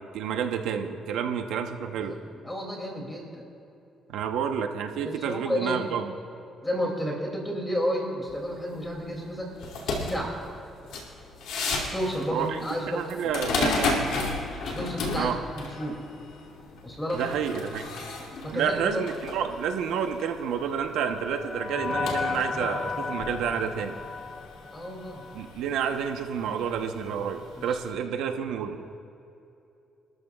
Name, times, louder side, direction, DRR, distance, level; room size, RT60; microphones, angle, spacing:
voice 1, 0.0-2.2 4.1-6.1 12.3-12.6 12.9-14.0 15.1-15.4 17.1-17.8 18.5-24.0 25.3-29.0, right 7 dB, 85° right, 5 dB, 1.0 m, -29 dB
voice 2, 2.4-3.4 5.0-5.8 6.6-9.5 9.9-10.4 11.8-13.3 14.6-16.0 16.8-17.2 18.4-19.0 24.7-25.3 27.6-27.8, equal, 15° left, -1 dB, 2.6 m, -31 dB
sound 1, 8.3-27.9, left 3 dB, 90° left, 2.6 m, -35 dB
sound 2, 20.2-25.6, left 4 dB, 30° left, 0.4 m, -34 dB
27.5 x 13.5 x 2.4 m, 2.7 s
cardioid pair, 90°, 0 cm